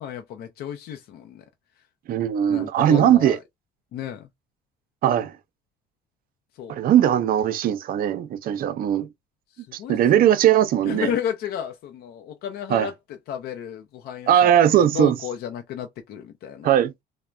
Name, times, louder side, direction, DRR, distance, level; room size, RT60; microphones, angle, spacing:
voice 1, 0.0-1.4 2.5-3.4 3.9-4.3 6.6-6.8 9.6-10.3 10.8-12.9 13.3-14.5 14.8-16.7, left 9 dB, 70° left, 0.5 m, -32 dB
voice 2, 2.1-3.4 5.0-5.3 6.7-9.1 9.9-11.1 12.7-12.9 14.3-15.2 16.6-16.9, right 10 dB, 60° right, 0.5 m, -19 dB
3.2 x 2.1 x 2.3 m
cardioid pair, 110°, 17 cm